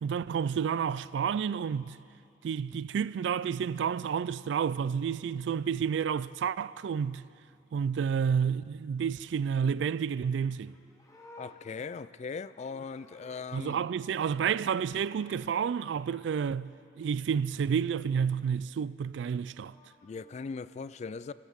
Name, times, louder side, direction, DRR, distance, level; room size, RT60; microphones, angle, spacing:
voice 1, 0.0-2.0 2.4-7.3 7.7-10.8 13.5-19.7, right 7 dB, 70° right, 0.3 m, -30 dB
Livestock farm animals working animals, 10.4-13.9 14.1-15.5 19.2-20.4, left 2 dB, 20° left, 1.3 m, -56 dB
voice 2, 11.4-13.9 20.0-21.3, left 5 dB, 40° left, 0.3 m, -39 dB
27.0 x 13.5 x 3.6 m
head